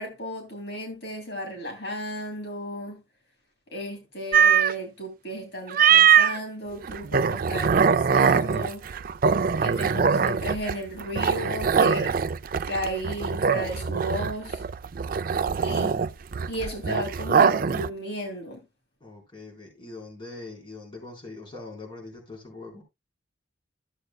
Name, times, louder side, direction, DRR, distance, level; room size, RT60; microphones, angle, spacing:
voice 1, 0.0-3.0 3.7-8.8 9.6-12.2 12.7-14.6 15.6-16.0 16.5-18.6, equal, 65° left, 2.9 m, -34 dB
sound 1, 4.3-4.7 5.7-6.4 6.8-17.9, right 7 dB, 50° right, 0.4 m, -22 dB
voice 2, 14.9-15.9 19.0-22.8, left 3 dB, 25° left, 3.9 m, -43 dB
14.0 x 7.9 x 2.2 m
head